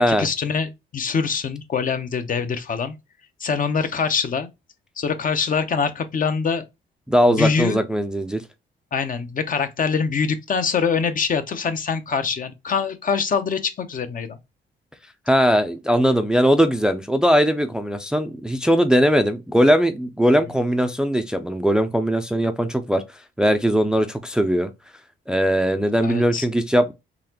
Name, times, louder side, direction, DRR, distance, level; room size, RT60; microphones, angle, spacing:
voice 1, 0.0-2.9 3.4-4.5 5.0-6.7 7.3-7.8 8.9-14.4 26.0-26.5, left 5 dB, 45° left, 0.7 m, -24 dB
voice 2, 7.1-8.4 15.3-23.0 23.4-24.7 25.3-26.9, equal, 5° right, 0.4 m, -19 dB
4.0 x 2.8 x 2.8 m
cardioid pair, 90°, 20 cm